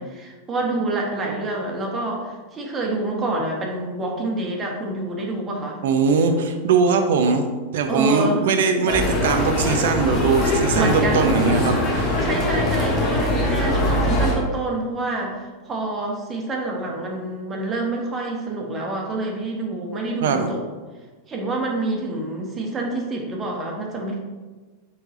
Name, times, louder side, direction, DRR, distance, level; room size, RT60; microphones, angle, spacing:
voice 1, 0.0-5.8 7.9-8.4 10.7-11.4 12.2-20.6 21.3-24.2, right 2 dB, 25° right, -1 dB, 1.4 m, -27 dB
voice 2, 5.8-7.4 7.7-12.2 20.2-20.5, right 4 dB, 55° right, 6 dB, 0.7 m, -20 dB
sound 1, 8.9-14.4, left 1 dB, 30° left, 1.5 m, -22 dB
6.6 x 5.5 x 2.7 m, 1.3 s
figure-of-eight pair, 90°, 0 cm